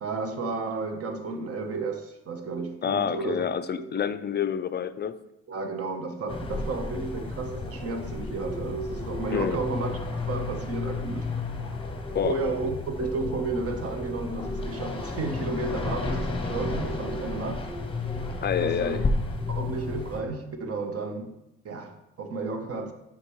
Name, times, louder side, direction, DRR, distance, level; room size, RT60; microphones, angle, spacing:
voice 1, 0.0-3.4 3.8-3.9 5.5-9.9 10.3-11.3 12.2-17.7 18.6-19.0 19.5-21.4 21.6-22.9, right 3 dB, 50° right, 1.0 m, -32 dB
voice 2, 2.8-5.2 9.3-9.6 12.1-12.4 18.4-19.0, left 8 dB, 35° left, 0.4 m, -28 dB
sound 1, 6.3-20.2, left 3 dB, 20° left, 0.9 m, -32 dB
7.9 x 5.7 x 3.1 m
cardioid pair, 90°, 30 cm